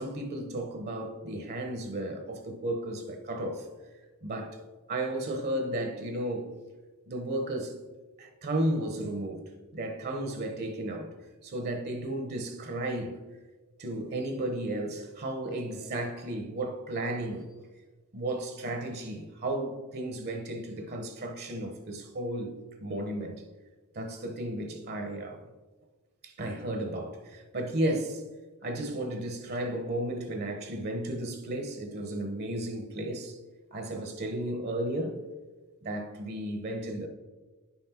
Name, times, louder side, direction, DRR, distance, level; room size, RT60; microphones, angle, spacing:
voice 1, 0.0-3.7 4.2-4.6 4.9-6.5 7.1-7.8 8.2-11.1 11.4-13.2 13.8-17.5 18.1-22.6 22.8-23.4 23.9-25.5 26.2-28.2 28.6-33.4 33.7-35.2 35.8-37.1, right 1 dB, 45° right, 1.0 m, -34 dB
10.0 x 5.8 x 4.4 m
head